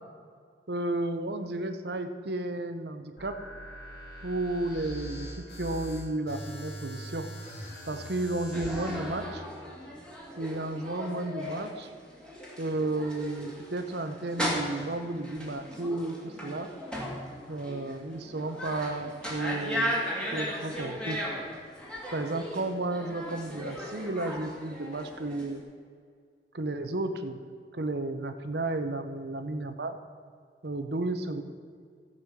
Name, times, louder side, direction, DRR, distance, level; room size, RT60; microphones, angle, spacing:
voice 1, 0.7-3.4 4.2-7.3 7.9-9.5 10.4-11.9 12.6-16.7 17.5-19.9 20.3-21.2 22.1-25.6 26.5-27.4 27.7-30.0 30.6-31.4, right 2 dB, 65° right, 8 dB, 0.9 m, -33 dB
sound 1, 3.2-9.4, equal, 60° left, 3.6 m, -42 dB
sound 2, 8.5-25.6, equal, 5° left, 2.1 m, -37 dB
15.0 x 5.5 x 6.7 m, 2.1 s
head